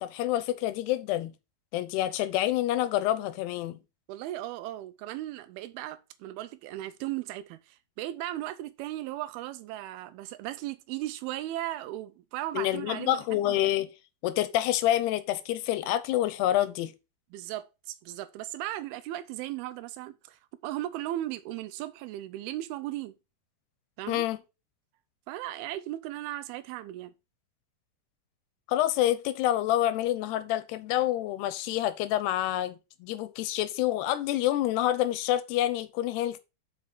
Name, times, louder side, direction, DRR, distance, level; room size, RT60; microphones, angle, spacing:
voice 1, 0.0-1.3 1.7-3.8 12.5-13.9 14.2-16.9 24.1-24.4 28.7-36.4, left 13 dB, 80° left, 2.6 m, -27 dB
voice 2, 4.1-13.6 17.3-23.1 24.0-24.2 25.3-27.1, right 14 dB, 90° right, 2.2 m, -37 dB
5.8 x 5.3 x 5.9 m
omnidirectional pair, 4.9 m